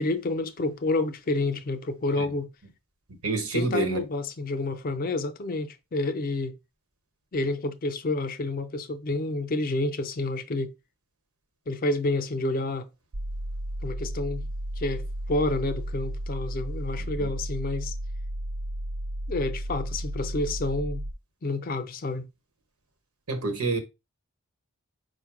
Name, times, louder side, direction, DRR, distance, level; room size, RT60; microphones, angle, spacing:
voice 1, 0.0-2.5 3.5-6.6 7.3-10.7 11.7-12.9 13.8-14.5 14.8-17.9 19.3-21.0 21.4-22.3, left 2 dB, 40° left, 0.5 m, -29 dB
voice 2, 3.1-4.0 17.0-17.3 23.3-23.8, right 3 dB, 90° right, 1.0 m, -28 dB
sound 1, 13.1-21.1, right 1 dB, 65° right, 0.5 m, -33 dB
5.1 x 2.1 x 4.6 m
head